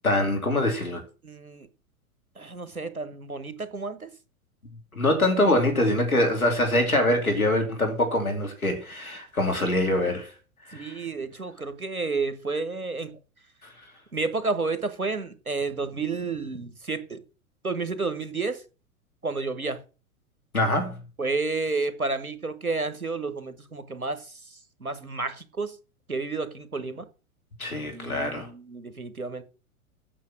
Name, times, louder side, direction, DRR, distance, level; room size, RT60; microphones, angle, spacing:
voice 1, 0.0-1.0 4.9-10.3 10.7-11.0 20.5-21.0 27.6-28.5, left 1 dB, 85° left, 2.8 m, -24 dB
voice 2, 1.2-1.7 2.4-4.1 10.7-13.1 14.1-17.2 17.6-18.6 19.2-19.8 21.2-24.3 24.8-25.8 26.1-27.0 27.9-29.4, right 3 dB, 85° right, 1.4 m, -31 dB
8.6 x 6.5 x 7.6 m
figure-of-eight pair, 100°, 42 cm